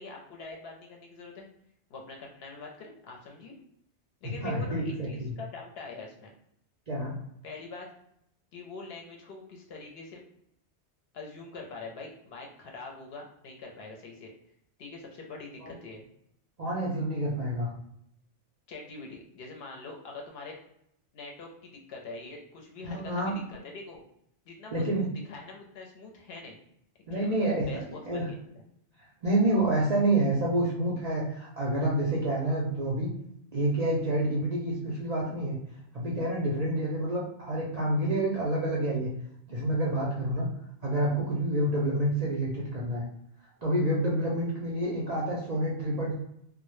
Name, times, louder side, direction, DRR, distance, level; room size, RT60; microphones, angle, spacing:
voice 1, 0.0-1.5 1.9-3.6 4.2-6.3 7.4-7.9 8.5-10.2 11.1-14.3 14.8-16.1 18.7-20.6 21.1-24.0 24.5-26.6 27.1-28.6, left 3 dB, 70° left, 0 dB, 0.7 m, -44 dB
voice 2, 4.2-5.3 6.9-7.2 15.6-15.7 16.6-17.7 22.8-23.3 24.7-25.1 27.1-27.7 28.1-28.3 29.2-33.1 33.5-35.6 35.9-39.2 39.5-40.5 40.8-43.0 43.6-46.1, right 1 dB, 55° right, -5 dB, 0.4 m, -28 dB
2.1 x 2.0 x 3.0 m, 0.74 s
omnidirectional pair, 1.2 m